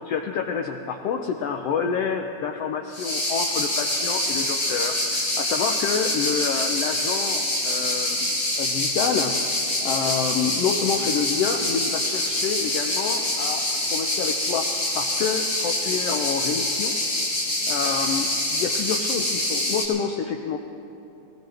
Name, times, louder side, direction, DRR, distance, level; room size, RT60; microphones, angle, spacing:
voice 1, 0.0-9.4 9.8-13.6 13.9-14.7 14.9-16.9 17.7-20.6, left 6 dB, 80° left, 4 dB, 1.3 m, -28 dB
sound 1, 2.9-19.8, left 1 dB, 30° left, 3.6 m, -25 dB
21.0 x 17.5 x 3.4 m, 2.9 s
omnidirectional pair, 3.5 m